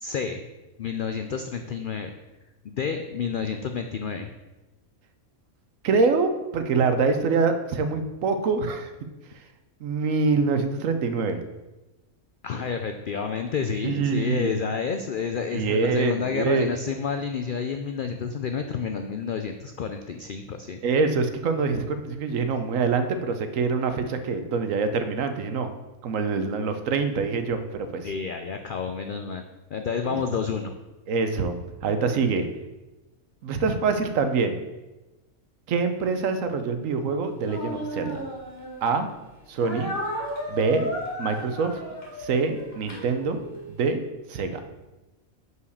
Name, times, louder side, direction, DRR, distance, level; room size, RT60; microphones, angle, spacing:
voice 1, 0.0-0.4 0.8-2.1 2.6-4.3 12.4-20.8 28.0-29.4 29.7-30.8, left 6 dB, 80° left, 6 dB, 0.4 m, -29 dB
voice 2, 5.8-8.9 9.8-11.4 13.8-14.5 15.5-16.7 20.8-25.7 26.0-28.1 30.1-30.2 31.1-31.6 31.8-32.5 33.4-34.6 35.7-38.2 38.8-39.1 39.5-39.9 40.5-40.9 41.2-41.7 42.2-43.4 43.7-44.0 44.3-44.6, right 4 dB, 70° right, 8 dB, 1.1 m, -25 dB
Speech, 37.4-39.0 39.6-43.6, equal, 45° left, 2.3 m, -34 dB
5.6 x 4.7 x 6.4 m, 1.1 s
omnidirectional pair, 1.5 m